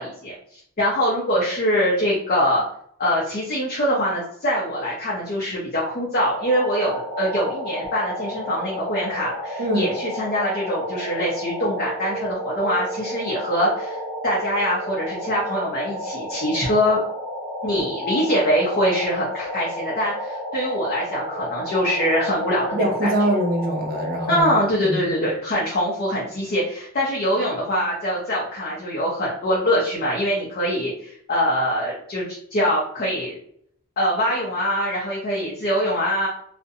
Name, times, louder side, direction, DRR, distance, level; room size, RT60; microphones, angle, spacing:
voice 1, 0.0-2.6 3.0-17.0 17.6-23.1 24.3-33.4 34.0-36.3, equal, 40° left, -5 dB, 0.5 m, -23 dB
sound 1, 6.1-24.4, equal, 15° left, 1.0 m, -32 dB
voice 2, 9.6-9.9 22.7-24.5 24.8-25.3, right 1 dB, 40° right, 1 dB, 0.5 m, -23 dB
2.5 x 2.1 x 2.6 m, 0.66 s
head